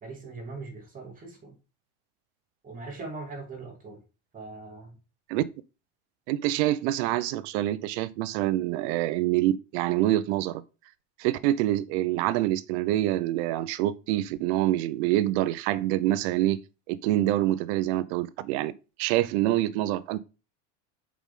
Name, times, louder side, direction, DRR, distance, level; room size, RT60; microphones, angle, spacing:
voice 1, 0.0-1.5 2.6-4.0 4.3-5.0, right 3 dB, 25° right, 2.7 m, -40 dB
voice 2, 6.3-10.6 11.2-16.6 16.9-18.7 19.0-20.2, right 14 dB, 70° right, 0.8 m, -26 dB
7.3 x 4.9 x 3.7 m
supercardioid pair, 135°, 35 cm